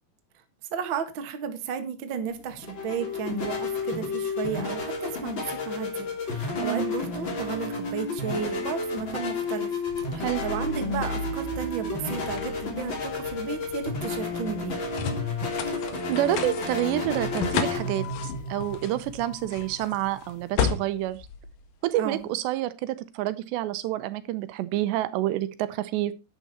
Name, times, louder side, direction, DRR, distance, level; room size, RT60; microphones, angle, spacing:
voice 1, 0.7-9.7 10.1-14.8 22.0-22.3, right 7 dB, 50° right, 7 dB, 1.4 m, -33 dB
sound 1, 2.3-20.5, left 3 dB, 30° left, 3.2 m, -32 dB
voice 2, 6.6-6.9 10.2-10.4 16.1-21.2 21.8-26.1, right 14 dB, 85° right, 15 dB, 3.0 m, -28 dB
sound 2, 9.9-22.2, left 6 dB, 60° left, 2.7 m, -35 dB
11.0 x 9.6 x 4.2 m, 0.27 s
omnidirectional pair, 5.0 m